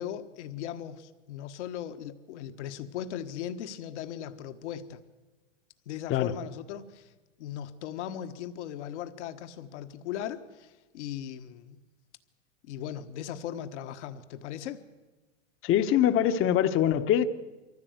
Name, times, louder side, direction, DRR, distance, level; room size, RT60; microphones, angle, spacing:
voice 1, 0.0-5.0 5.9-7.1 7.4-11.8 12.6-14.8, left 10 dB, 65° left, 1.4 m, -38 dB
voice 2, 15.6-17.2, left 10 dB, 35° left, 1.0 m, -23 dB
23.0 x 15.0 x 8.0 m
hypercardioid pair, 110°, 37 cm